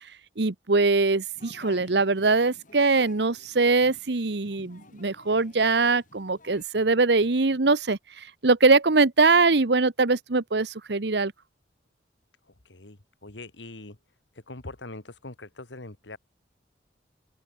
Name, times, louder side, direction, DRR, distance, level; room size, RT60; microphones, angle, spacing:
voice 1, 0.4-11.3, right 3 dB, 65° right, 1.0 m, -22 dB
sound 1, 1.3-6.6, left 2 dB, 45° left, 5.3 m, -53 dB
voice 2, 12.6-14.0 14.5-16.2, left 2 dB, 85° left, 2.3 m, -42 dB
open air
head